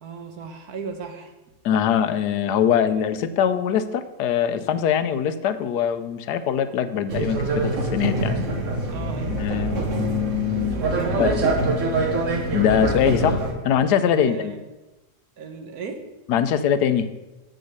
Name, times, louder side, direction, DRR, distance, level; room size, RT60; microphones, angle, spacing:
voice 1, 0.0-1.3 8.9-10.2 10.9-11.4 14.1-14.6 15.4-16.1, right 5 dB, 70° right, 6 dB, 1.5 m, -36 dB
voice 2, 1.6-8.3 9.3-10.8 11.2-11.3 12.5-14.5 16.3-17.1, left 8 dB, 85° left, 12 dB, 1.2 m, -22 dB
sound 1, 7.1-13.5, right 2 dB, 55° right, 1.5 m, -24 dB
7.7 x 6.4 x 6.5 m, 1.1 s
omnidirectional pair, 1.7 m